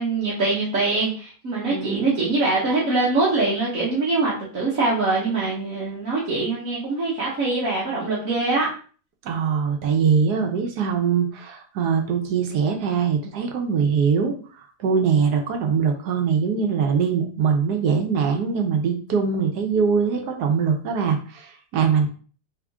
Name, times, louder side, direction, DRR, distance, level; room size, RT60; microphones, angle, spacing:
voice 1, 0.0-8.7, right 3 dB, 60° right, -6 dB, 1.5 m, -23 dB
voice 2, 1.7-2.2 9.2-14.3 14.8-22.1, right 6 dB, 85° right, 4 dB, 1.4 m, -22 dB
3.6 x 3.5 x 3.6 m, 0.41 s
omnidirectional pair, 1.7 m